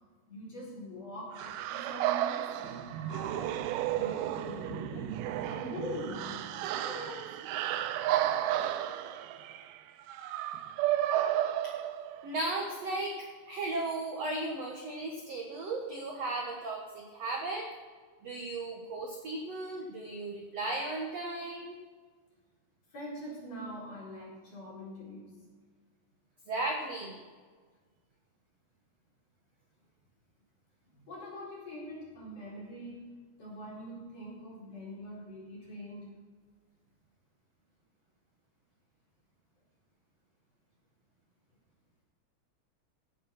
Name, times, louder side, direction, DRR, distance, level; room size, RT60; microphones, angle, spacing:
voice 1, 0.3-3.6 3.9-5.1 5.5-7.4 22.9-25.4 30.9-36.1, equal, 35° left, -5 dB, 5.4 m, -43 dB
sound 1, 1.4-12.4, right 12 dB, 80° right, 2.3 m, -33 dB
voice 2, 12.2-17.7 18.2-21.8 26.5-27.2, right 2 dB, 60° right, 0 dB, 1.7 m, -36 dB
15.5 x 8.0 x 5.9 m, 1.5 s
omnidirectional pair, 5.0 m